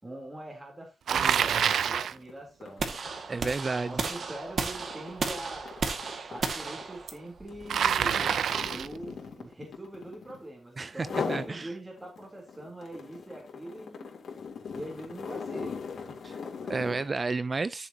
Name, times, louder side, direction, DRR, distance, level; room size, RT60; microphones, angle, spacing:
voice 1, 0.0-3.0 3.8-5.8 6.3-8.4 8.7-14.1 14.7-15.8 16.1-16.2, right 1 dB, 15° right, 3.7 m, -43 dB
Bicycle, 1.1-2.2 7.7-9.0, right 8 dB, 85° right, 0.6 m, -26 dB
sound 1, 1.6-1.7 2.0-10.5 10.9-11.5 12.0-17.1, left 5 dB, 65° left, 3.5 m, -39 dB
sound 2, 2.8-8.9, right 4 dB, 55° right, 2.1 m, -34 dB
voice 2, 3.3-4.0 10.8-11.7 16.2-17.9, right 3 dB, 35° right, 0.5 m, -32 dB
13.5 x 7.2 x 2.9 m
wide cardioid pair, 115°, 0 cm